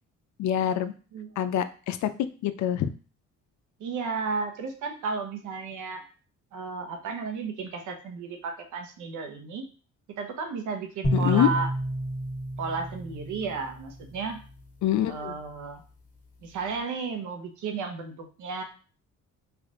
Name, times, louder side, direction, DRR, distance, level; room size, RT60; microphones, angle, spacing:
voice 1, 0.4-0.9 1.4-2.1 2.4-2.9 11.1-11.5 14.8-15.3, left 11 dB, 70° left, 11 dB, 0.5 m, -25 dB
voice 2, 3.8-6.0 6.5-9.7 10.1-11.7 12.6-14.4 15.1-15.8 16.4-18.6, right 4 dB, 80° right, 5 dB, 0.9 m, -33 dB
sound 1, 11.0-14.3, right 1 dB, 25° left, 1.3 m, -30 dB
3.4 x 2.5 x 3.8 m, 0.37 s
cardioid pair, 90°, 30 cm